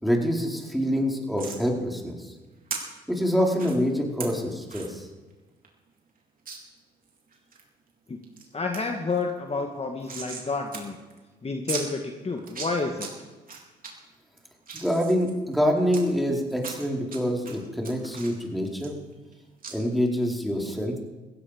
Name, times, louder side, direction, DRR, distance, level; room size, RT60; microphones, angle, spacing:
voice 1, 0.0-2.3 3.1-5.1 14.7-18.9 19.7-21.0, equal, ahead, 0 dB, 4.4 m, -26 dB
sound 1, 1.4-1.6 2.7-2.8 3.6-3.7 4.2-4.3 4.7-4.9 5.3-5.4 5.6-5.7 6.5-6.6 7.1-7.6 8.1-8.4 8.7-8.8 9.1-10.5 10.7-10.8 11.1-11.2 11.7-11.8 12.4-13.1 13.5-13.9 14.4-16.0 16.6-17.2 17.4-19.3 19.6-19.7, right 5 dB, 45° right, 4.2 m, -37 dB
voice 2, 8.5-11.0 11.4-13.1, left 3 dB, 30° left, 4 dB, 1.8 m, -30 dB
16.5 x 16.0 x 5.1 m, 1.2 s
hypercardioid pair, 55°, 21 cm